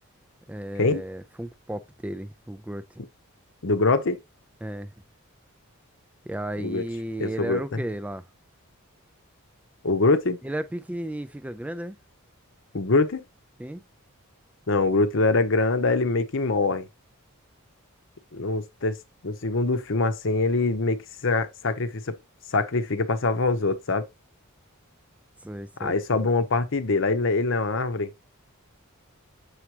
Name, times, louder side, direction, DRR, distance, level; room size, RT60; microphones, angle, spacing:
voice 1, 0.5-3.0 4.6-4.9 6.3-8.2 10.4-12.0 13.6-13.8 25.4-26.2, right 1 dB, 5° right, 0.3 m, -34 dB
voice 2, 3.6-4.2 6.6-6.8 7.2-7.8 9.8-10.4 12.7-13.2 14.7-16.9 18.3-19.0 19.2-22.1 22.5-24.1 25.8-28.1, left 3 dB, 60° left, 0.8 m, -24 dB
7.1 x 4.8 x 2.8 m
head